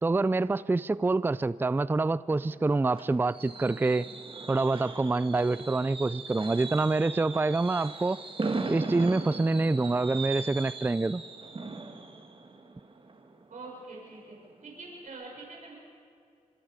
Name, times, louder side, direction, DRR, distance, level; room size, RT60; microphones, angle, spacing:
voice 1, 0.0-4.1 4.5-8.2 8.7-11.2, right 3 dB, 15° right, 17 dB, 0.4 m, -26 dB
Fireworks, 2.3-14.0 14.3-14.6 14.9-15.0, right 3 dB, 40° right, 2.1 m, -39 dB
voice 2, 13.5-14.4 14.6-15.7, right 3 dB, 65° right, -2 dB, 5.9 m, -44 dB
26.0 x 22.0 x 5.0 m, 2.5 s
cardioid pair, 65°, 14 cm